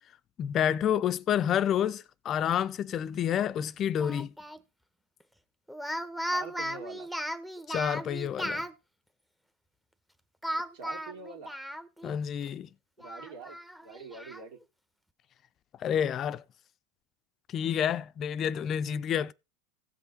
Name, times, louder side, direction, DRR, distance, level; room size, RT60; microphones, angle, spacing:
voice 1, 0.4-4.3 7.7-8.6 12.0-12.7 15.8-16.4 17.5-19.3, left 9 dB, 40° left, 0.5 m, -29 dB
Speech, 4.0-4.6 5.7-8.7 10.4-12.2 12.5-12.6 13.0-14.4, equal, 5° right, 1.0 m, -36 dB
voice 2, 6.3-7.1 10.5-11.6 13.0-14.6, right 4 dB, 65° right, 2.7 m, -45 dB
16.0 x 5.6 x 3.9 m
hypercardioid pair, 90°, 0 cm